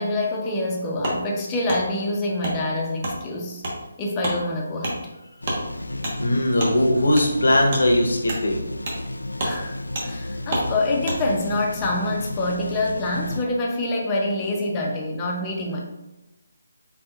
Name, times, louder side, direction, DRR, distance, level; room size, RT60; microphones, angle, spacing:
voice 1, 0.0-3.6 4.0-5.0 9.4-15.8, left 2 dB, 20° left, -1 dB, 0.8 m, -26 dB
Wood, 1.0-1.2 1.7-1.8 2.4-2.6 3.0-3.2 3.6-3.8 4.2-4.4 4.8-5.0 5.4-5.6 6.0-6.1 6.6-6.7 7.1-7.3 7.7-7.8 8.2-8.4 8.8-9.0 9.3-9.5 9.9-10.1 10.5-10.7 11.0-11.2, right 1 dB, 45° right, 1.3 m, -27 dB
sound 1, 5.4-13.4, left 1 dB, 90° left, 0.3 m, -33 dB
voice 2, 6.2-8.7, left 1 dB, 75° left, 1 dB, 0.9 m, -20 dB
4.4 x 4.1 x 2.5 m, 0.97 s
figure-of-eight pair, 155°, 0 cm